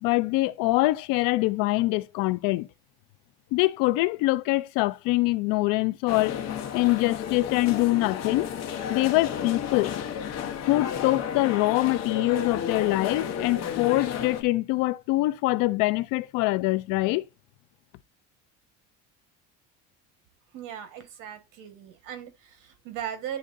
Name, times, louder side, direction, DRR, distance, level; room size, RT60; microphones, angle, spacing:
voice 1, 0.0-2.7 3.5-6.4 6.7-8.5 8.9-10.0 10.7-17.2, left 20 dB, 85° left, 0.5 m, -24 dB
sound 1, 6.1-14.4, left 8 dB, 50° left, 1.2 m, -32 dB
voice 2, 20.5-23.4, right 9 dB, 75° right, 1.5 m, -38 dB
10.5 x 3.8 x 2.6 m
cardioid pair, 150°, 32 cm